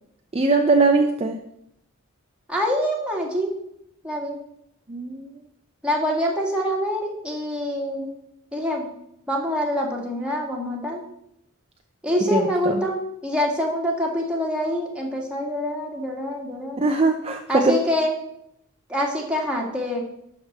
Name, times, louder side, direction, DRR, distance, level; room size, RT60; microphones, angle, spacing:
voice 1, 0.3-1.4 4.9-5.3 12.3-12.8 16.8-17.7, right 3 dB, 25° right, 4 dB, 0.6 m, -20 dB
voice 2, 2.5-3.5 4.0-4.4 5.8-8.2 8.5-8.9 9.3-11.0 12.0-16.9 17.5-18.1 18.9-20.0, equal, 5° right, -1 dB, 2.0 m, -25 dB
12.0 x 4.3 x 6.7 m, 0.76 s
head